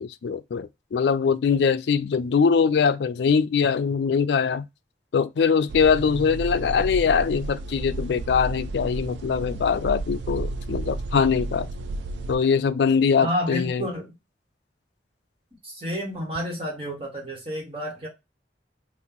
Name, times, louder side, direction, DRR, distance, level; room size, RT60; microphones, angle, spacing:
voice 1, 0.0-4.7 5.1-11.7 12.3-13.9, left 6 dB, 70° left, 0.3 m, -22 dB
sound 1, 5.7-12.4, right 2 dB, 80° right, 0.4 m, -32 dB
voice 2, 13.2-14.1 15.6-18.1, equal, 30° right, 1.4 m, -30 dB
2.9 x 2.6 x 3.8 m
head